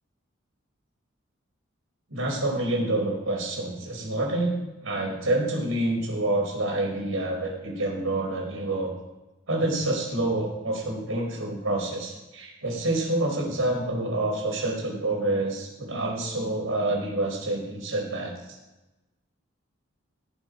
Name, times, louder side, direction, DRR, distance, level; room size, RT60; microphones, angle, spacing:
voice 1, 2.1-4.5 4.8-8.9 9.5-18.3, right 2 dB, 85° right, -1 dB, 4.6 m, -27 dB
17.5 x 7.1 x 5.2 m, 1.0 s
head